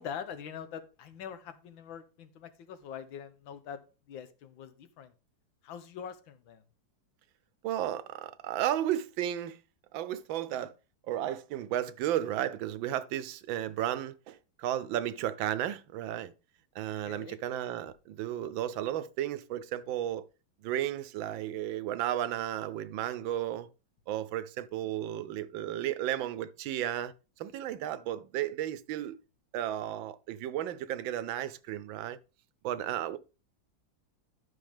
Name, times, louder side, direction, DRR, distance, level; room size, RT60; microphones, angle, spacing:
voice 1, 0.0-5.1 5.6-6.6 16.9-17.4, left 8 dB, 85° left, 1.7 m, -44 dB
voice 2, 7.6-9.6 9.9-10.7 11.1-16.3 16.7-20.3 20.6-23.7 24.1-27.1 27.4-29.2 29.5-32.2 32.6-33.2, right 12 dB, 80° right, 1.4 m, -33 dB
11.5 x 6.2 x 3.5 m
omnidirectional pair, 2.1 m